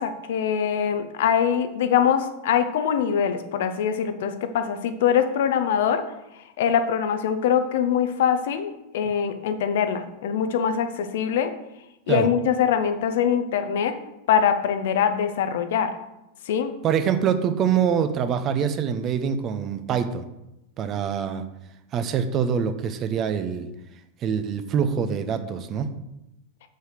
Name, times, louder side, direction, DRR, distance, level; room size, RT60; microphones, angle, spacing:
voice 1, 0.0-6.1 6.6-11.5 12.1-14.0 14.3-15.9 16.5-16.7, left 8 dB, 55° left, 9 dB, 0.9 m, -23 dB
voice 2, 16.8-20.2 20.8-21.4 21.9-23.7 24.2-25.9, right 7 dB, 30° right, 9 dB, 0.8 m, -24 dB
7.4 x 6.5 x 6.5 m, 0.92 s
figure-of-eight pair, 90°, 0 cm